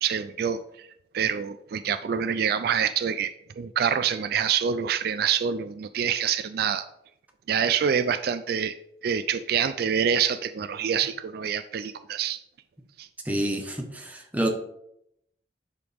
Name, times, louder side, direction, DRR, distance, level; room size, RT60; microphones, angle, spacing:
voice 1, 0.0-0.9 1.1-6.9 7.5-8.8 9.0-12.4 13.0-13.1, right 7 dB, 55° right, 12 dB, 0.3 m, -26 dB
voice 2, 13.2-14.5, right 1 dB, 10° right, 2 dB, 1.1 m, -28 dB
10.5 x 4.9 x 3.4 m, 0.78 s
head